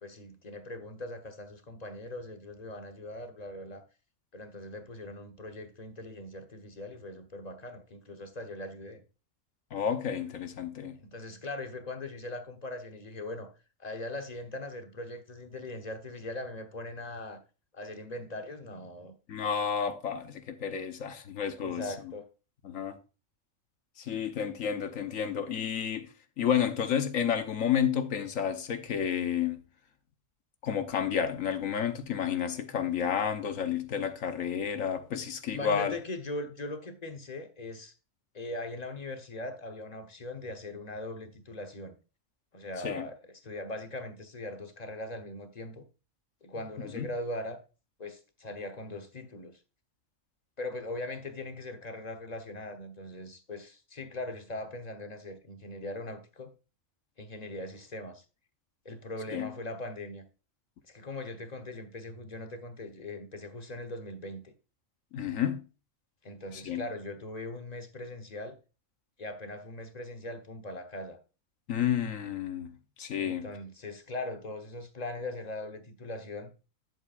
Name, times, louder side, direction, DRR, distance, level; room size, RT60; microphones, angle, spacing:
voice 1, 0.0-3.8 4.3-9.0 11.0-13.5 13.8-17.4 17.7-19.1 21.6-22.2 35.5-37.9 38.3-42.0 42.5-45.8 46.4-47.6 48.0-49.6 50.6-56.5 57.2-58.2 58.8-60.2 60.9-64.5 66.2-68.6 69.2-71.2 73.2-76.5, left 2 dB, 35° left, 1.2 m, -40 dB
voice 2, 9.7-11.0 19.3-21.9 22.6-23.0 24.0-26.1 26.4-29.6 30.6-35.9 42.8-43.1 46.9-47.1 59.3-59.5 65.1-65.6 66.6-66.8 71.7-73.5, left 8 dB, 80° left, 1.4 m, -31 dB
10.5 x 7.9 x 2.5 m
omnidirectional pair, 1.3 m